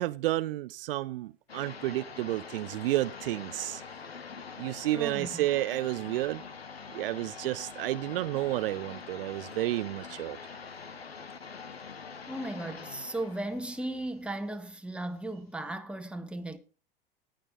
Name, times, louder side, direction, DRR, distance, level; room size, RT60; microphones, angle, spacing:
voice 1, 0.0-3.8 4.6-6.4 6.9-10.4, right 16 dB, 70° right, 0.5 m, -31 dB
sound 1, 1.5-14.9, left 5 dB, 90° left, 1.0 m, -45 dB
voice 2, 4.9-5.5 12.3-16.6, right 1 dB, 5° right, 1.4 m, -36 dB
18.0 x 6.7 x 3.8 m
figure-of-eight pair, 75°, 30 cm